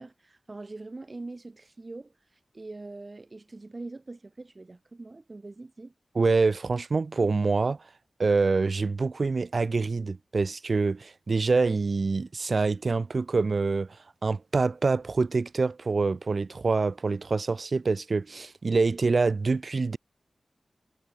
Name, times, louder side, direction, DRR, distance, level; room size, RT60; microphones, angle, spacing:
voice 1, 0.0-2.1 2.5-5.9, right 2 dB, 40° right, 1.9 m, -42 dB
voice 2, 6.1-7.8 8.2-20.0, right 4 dB, 60° right, 1.0 m, -26 dB
wide cardioid pair, 70°, 0 cm